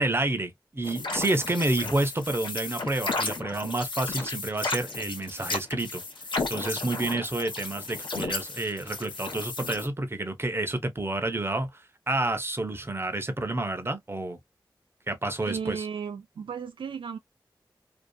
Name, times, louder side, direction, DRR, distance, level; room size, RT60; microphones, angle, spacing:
voice 1, 0.0-6.0 6.5-14.4 15.1-15.9, right 2 dB, 30° right, 0.8 m, -29 dB
sound 1, 0.8-9.9, left 3 dB, 70° left, 0.9 m, -34 dB
voice 2, 15.4-17.2, right 6 dB, 85° right, 0.4 m, -35 dB
2.7 x 2.3 x 2.3 m
cardioid pair, 45°, 8 cm